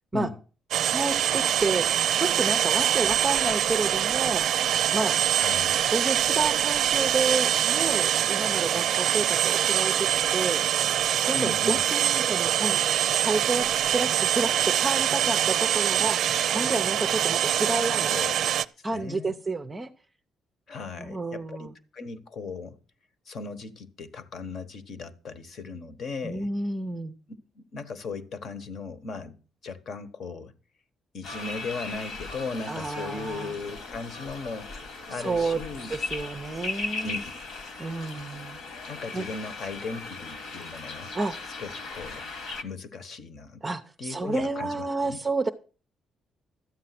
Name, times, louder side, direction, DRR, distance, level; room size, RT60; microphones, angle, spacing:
sound 1, 0.7-18.7, right 10 dB, 60° right, 0.5 m, -24 dB
voice 1, 0.9-1.9 2.2-4.4 4.9-5.2 5.9-10.6 11.2-12.8 13.1-18.2 18.8-19.9 21.0-21.7 26.2-27.1 32.7-33.5 35.2-35.6 35.9-37.2 37.8-38.6 39.1-39.3 41.1-41.4 43.6-45.5, right 3 dB, 15° right, 0.7 m, -30 dB
voice 2, 5.3-5.9 11.3-11.9 17.8-18.3 18.9-19.3 20.7-21.7 21.9-22.8 23.3-26.5 27.5-29.4 29.6-30.5 31.1-34.7 35.1-35.9 37.0-37.3 38.9-41.1 41.6-42.3 42.6-43.6 44.0-45.2, left 4 dB, 45° left, 1.3 m, -37 dB
sound 2, 31.2-42.6, left 3 dB, 60° left, 1.8 m, -38 dB
13.0 x 8.8 x 5.9 m
cardioid pair, 170°, 0 cm